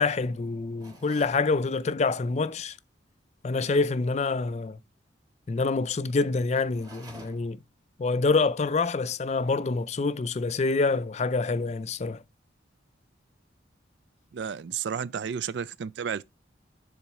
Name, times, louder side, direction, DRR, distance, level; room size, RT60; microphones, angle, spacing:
voice 1, 0.0-2.8 3.4-4.8 5.5-7.6 8.0-12.2, left 3 dB, 35° left, 0.4 m, -26 dB
sound 1, 0.8-1.4 6.7-7.6, right 2 dB, 20° right, 1.4 m, -49 dB
voice 2, 14.3-16.2, right 7 dB, 70° right, 0.4 m, -32 dB
7.1 x 3.8 x 4.6 m
head